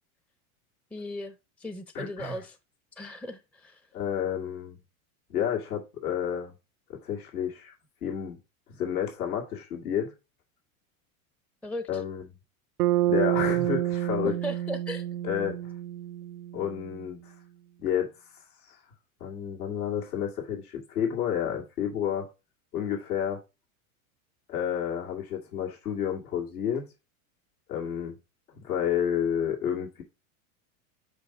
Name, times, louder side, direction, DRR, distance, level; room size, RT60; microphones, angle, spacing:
voice 1, 0.9-2.6 3.0-3.8 11.6-12.0 14.2-15.1, equal, 5° left, 0.5 m, -37 dB
voice 2, 1.9-2.4 3.9-4.8 5.3-6.5 6.9-7.7 8.0-8.4 8.7-10.1 11.9-12.3 13.1-14.3 15.2-15.6 16.5-17.3 17.8-18.8 19.2-22.3 22.7-23.4 24.5-26.9 27.7-28.1 28.6-30.0, left 9 dB, 90° left, 2.3 m, -30 dB
Bass guitar, 12.8-16.9, right 14 dB, 85° right, 0.6 m, -28 dB
5.1 x 5.1 x 5.8 m
supercardioid pair, 110°, 43 cm